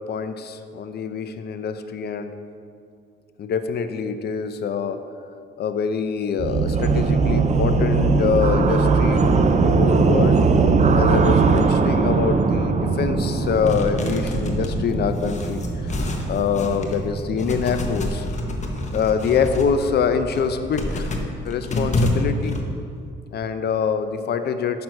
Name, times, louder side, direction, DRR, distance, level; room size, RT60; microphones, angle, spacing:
voice 1, 0.0-2.3 3.4-5.0 5.6-9.2 9.5-10.4 10.9-18.3 18.9-21.1 21.4-22.6 23.3-24.8, left 6 dB, 55° left, 9 dB, 0.6 m, -25 dB
sound 1, 6.4-21.3, right 4 dB, 35° right, 0.5 m, -21 dB
sound 2, 13.6-17.0 17.4-19.7 20.2-22.6, left 1 dB, 35° left, 1.0 m, -28 dB
6.1 x 6.0 x 5.2 m, 2.4 s
cardioid pair, 90°, 20 cm